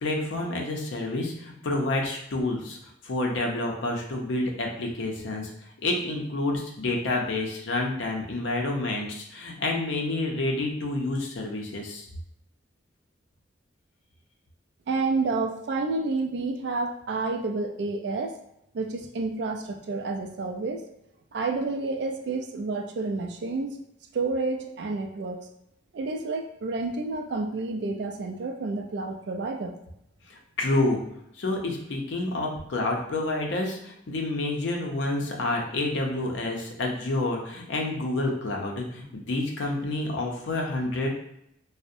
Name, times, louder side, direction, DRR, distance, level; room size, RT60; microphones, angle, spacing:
voice 1, 0.0-2.8 3.0-5.5 5.8-12.1 30.6-31.0 31.4-41.1, left 2 dB, 75° left, 0 dB, 0.5 m, -28 dB
voice 2, 14.9-18.3 18.7-20.8 21.3-23.8 24.1-25.5 25.9-29.8, right 3 dB, 60° right, 4 dB, 0.3 m, -29 dB
2.4 x 2.0 x 2.6 m, 0.78 s
head